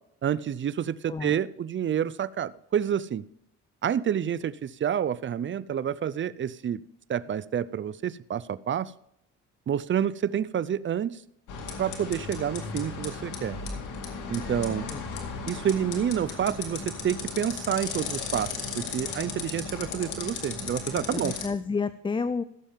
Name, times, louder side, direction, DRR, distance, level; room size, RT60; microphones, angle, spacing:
voice 1, 0.2-3.2 3.8-6.8 7.1-8.9 9.7-11.2 11.8-13.6 14.3-14.9 15.5-21.3, right 9 dB, 40° right, 19 dB, 0.5 m, -28 dB
sound 1, 11.5-21.5, left 4 dB, 85° left, 2.2 m, -35 dB
voice 2, 21.1-22.4, left 4 dB, 15° left, 14 dB, 0.4 m, -30 dB
16.0 x 7.2 x 3.6 m, 0.77 s
cardioid pair, 90°, 30 cm